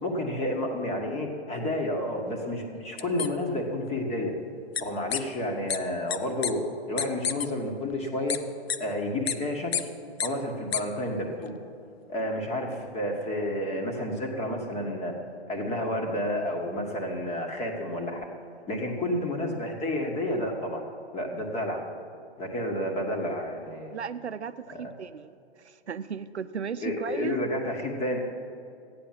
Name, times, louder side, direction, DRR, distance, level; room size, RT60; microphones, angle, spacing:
voice 1, 0.0-4.3 4.8-8.4 8.8-9.8 10.2-11.6 12.1-15.1 15.5-18.2 18.7-20.9 21.1-21.8 22.4-23.9 24.7-24.9 26.8-28.2, left 1 dB, 20° left, 2 dB, 1.9 m, -30 dB
sound 1, 3.0-3.3 4.8-4.9 5.1-5.2 5.7-5.8 6.1-6.2 6.4-6.5 7.0-7.5 8.3-8.4 8.7-8.8 9.3-9.4 9.7-9.8 10.2-10.3 10.7-10.8, left 8 dB, 65° left, 0.8 m, -28 dB
voice 2, 23.9-25.3 25.6-27.3, right 7 dB, 85° right, 11 dB, 0.7 m, -35 dB
14.0 x 9.6 x 7.5 m, 2.6 s
figure-of-eight pair, 120°, 33 cm